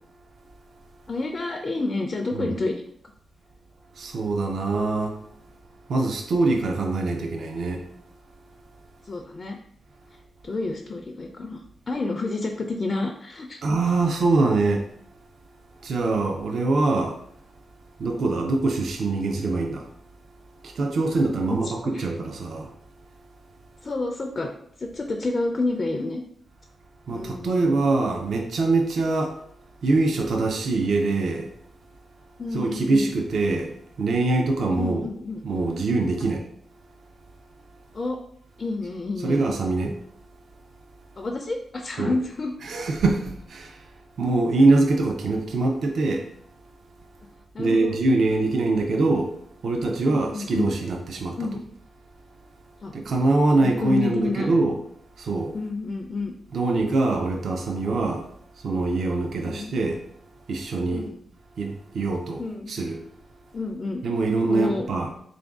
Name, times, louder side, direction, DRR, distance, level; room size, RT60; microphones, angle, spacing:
voice 1, 1.1-2.8 9.0-9.6 10.4-13.6 21.5-22.0 23.8-24.5 24.8-26.2 27.1-27.8 32.4-33.1 34.8-35.4 37.9-38.2 38.6-39.5 41.2-42.5 47.5-48.0 50.1-50.7 51.4-51.6 52.8-52.9 53.6-54.5 55.5-56.3 59.4-59.7 60.9-61.2 62.4-62.7 63.5-64.0 64.4-64.9, left 3 dB, 35° left, 3 dB, 0.4 m, -29 dB
voice 2, 4.0-5.2 5.9-7.9 13.6-14.9 15.8-17.2 18.0-19.9 20.6-22.7 27.1-29.4 29.8-31.5 32.5-35.0 35.4-36.4 39.2-40.0 42.0-42.1 42.6-43.9 44.2-46.2 47.6-49.3 49.6-51.4 52.9-54.8 55.2-55.5 56.5-58.3 58.6-60.0 60.5-61.0 61.6-62.4 62.7-63.0 64.0-65.1, right 3 dB, 65° right, 2 dB, 0.5 m, -23 dB
3.8 x 2.5 x 3.5 m, 0.67 s
wide cardioid pair, 115°, 0 cm